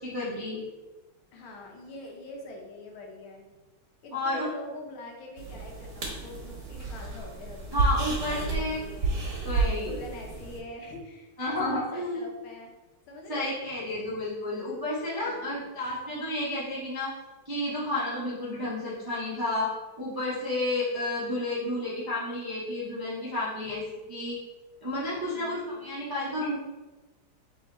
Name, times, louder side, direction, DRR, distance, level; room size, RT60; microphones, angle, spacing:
voice 1, 0.0-0.6 4.1-4.4 7.7-8.8 9.4-9.9 11.4-12.2 13.3-17.1 17.4-19.7 20.0-23.8 24.1-24.4 24.8-26.6, left 1 dB, 25° right, -8 dB, 0.5 m, -31 dB
voice 2, 1.3-3.5 4.0-9.2 9.8-12.7 13.1-13.6 13.9-14.0 15.2-15.7 23.6-23.8 25.2-25.8, left 2 dB, 85° left, 0 dB, 1.7 m, -44 dB
sound 1, 5.4-10.6, right 3 dB, 55° right, 1.3 m, -31 dB
3.5 x 3.4 x 4.1 m, 1.2 s
omnidirectional pair, 2.2 m